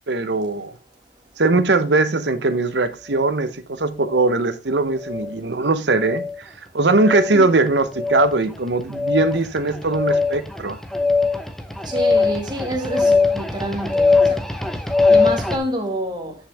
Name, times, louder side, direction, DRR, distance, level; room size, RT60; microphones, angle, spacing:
voice 1, 0.1-0.7 1.4-6.3 6.7-10.8, right 3 dB, 70° right, 0.9 m, -20 dB
sound 1, 4.1-4.3 5.0-5.4 6.0-6.4 7.0-7.4 7.9-8.4 8.9-15.6, left 4 dB, ahead, 0.7 m, -20 dB
voice 2, 11.9-14.4 15.1-16.4, right 1 dB, 25° right, 1.8 m, -27 dB
9.8 x 5.7 x 3.4 m
head